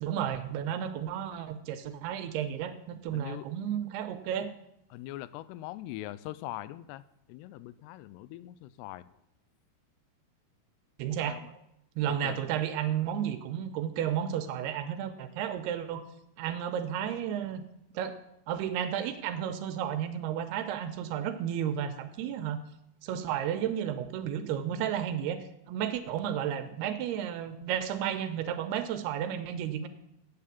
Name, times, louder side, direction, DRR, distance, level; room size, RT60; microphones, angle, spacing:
voice 1, 0.0-4.5 11.0-11.4 12.0-16.0 16.4-17.6 17.9-18.2 18.5-22.6 23.0-29.9, right 9 dB, 85° right, 9 dB, 2.8 m, -32 dB
voice 2, 3.1-3.5 4.9-7.0 7.3-9.1 11.2-11.5 12.1-12.5, left 15 dB, 90° left, 16 dB, 2.6 m, -42 dB
9.2 x 8.6 x 7.3 m, 0.81 s
omnidirectional pair, 4.7 m